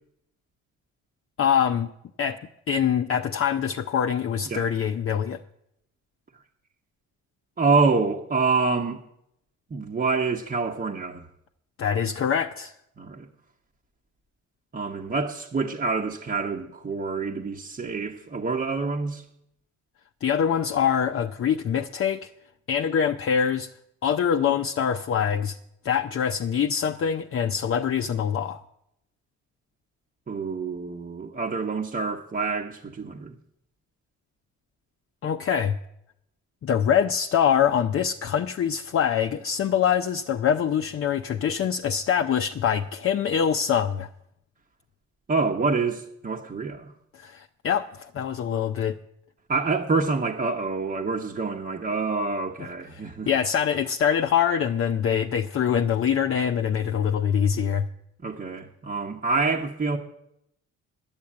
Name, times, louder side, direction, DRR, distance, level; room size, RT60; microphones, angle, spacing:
voice 1, 1.4-1.9 2.2-2.4 2.7-5.4 11.8-12.7 20.2-22.3 22.7-23.7 24.0-25.6 25.8-28.6 35.2-35.8 36.6-44.1 47.1-49.0 52.9-57.9, left 8 dB, 45° left, 0.6 m, -24 dB
voice 2, 7.6-9.0 9.7-11.2 13.0-13.3 14.7-19.2 30.3-33.3 45.3-46.9 49.5-53.3 58.2-60.0, right 4 dB, 30° right, 1.0 m, -26 dB
10.5 x 9.0 x 8.5 m
cardioid pair, 90°, 30 cm